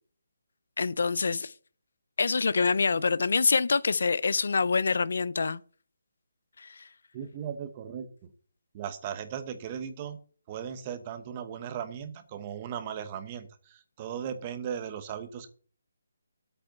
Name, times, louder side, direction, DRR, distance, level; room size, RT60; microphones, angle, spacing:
voice 1, 0.8-1.5 2.2-5.6 6.6-6.8, left 4 dB, 65° left, 0.5 m, -26 dB
voice 2, 7.1-8.3 8.7-10.2 10.5-15.5, right 8 dB, 25° right, 1.1 m, -37 dB
8.7 x 5.4 x 8.0 m
hypercardioid pair, 170°, 0 cm